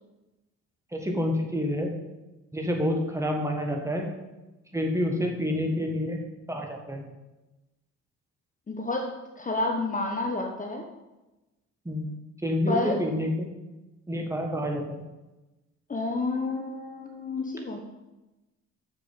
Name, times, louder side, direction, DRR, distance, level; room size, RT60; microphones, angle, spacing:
voice 1, 0.9-1.9 2.5-4.1 4.7-6.2 6.5-7.0 11.9-12.1 12.4-13.5 14.1-15.0, left 1 dB, 10° right, 1 dB, 1.6 m, -28 dB
voice 2, 8.7-10.8 12.7-13.0 15.9-17.8, left 2 dB, 25° left, 2 dB, 1.0 m, -30 dB
6.8 x 6.5 x 5.7 m, 1.1 s
cardioid pair, 90°, 30 cm